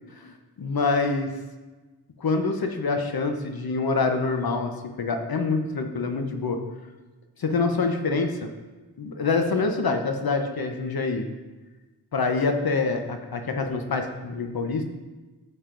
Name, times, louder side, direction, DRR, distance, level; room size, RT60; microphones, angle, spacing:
voice 1, 0.2-1.3 2.2-4.7 5.0-6.6 7.4-8.5 9.0-11.3 12.1-14.8, left 4 dB, 60° left, 5 dB, 0.9 m, -26 dB
10.0 x 6.6 x 2.6 m, 1.2 s
cardioid pair, 50°, 41 cm